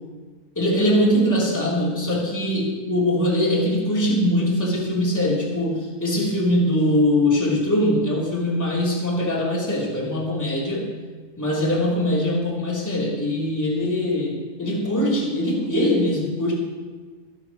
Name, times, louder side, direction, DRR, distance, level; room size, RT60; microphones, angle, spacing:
voice 1, 0.5-10.9 11.4-16.5, left 1 dB, 5° left, -5 dB, 2.1 m, -22 dB
22.0 x 12.5 x 3.1 m, 1.4 s
omnidirectional pair, 5.3 m